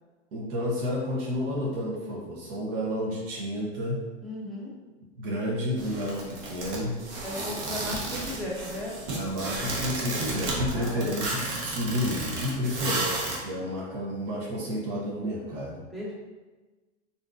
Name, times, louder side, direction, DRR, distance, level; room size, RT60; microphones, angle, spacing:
voice 1, 0.3-4.0 5.2-6.9 9.1-15.8, left 1 dB, 55° right, -3 dB, 0.9 m, -31 dB
voice 2, 4.2-4.7 7.2-9.0 10.7-11.6 15.9-16.1, left 1 dB, ahead, -6 dB, 0.7 m, -36 dB
sound 1, 5.8-13.4, right 2 dB, 75° right, 1.0 m, -33 dB
3.6 x 2.6 x 2.4 m, 1.2 s
hypercardioid pair, 120°, 35 cm